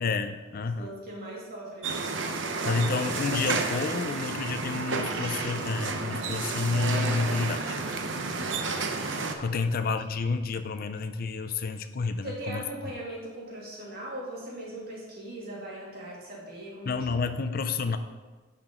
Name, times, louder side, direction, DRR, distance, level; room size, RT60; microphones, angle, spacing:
voice 1, 0.0-0.9 2.6-7.8 9.4-12.6 16.8-18.0, left 4 dB, 50° left, 9 dB, 0.5 m, -29 dB
voice 2, 0.8-2.5 9.5-9.7 12.2-17.3, right 1 dB, 55° right, -4 dB, 2.6 m, -40 dB
sound 1, 1.8-9.3, right 3 dB, 80° right, 0.8 m, -31 dB
10.5 x 6.0 x 3.7 m, 1.3 s
head